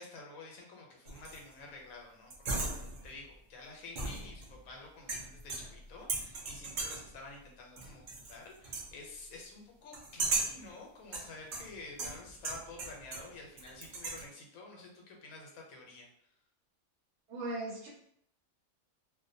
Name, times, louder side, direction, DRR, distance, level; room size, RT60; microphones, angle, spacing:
voice 1, 0.0-2.3 2.6-16.1, left 3 dB, 85° left, 0 dB, 1.1 m, -50 dB
sound 1, 1.1-1.5 2.3-3.2 4.0-4.7 5.1-5.8 6.1-7.1 7.8-8.3 8.6-8.9 9.9-10.6 11.1-13.3 13.6-14.2, right 3 dB, 90° right, 0.4 m, -37 dB
voice 2, 17.3-17.9, right 2 dB, 60° right, -3 dB, 0.8 m, -38 dB
2.5 x 2.1 x 2.6 m, 0.68 s
omnidirectional pair, 1.5 m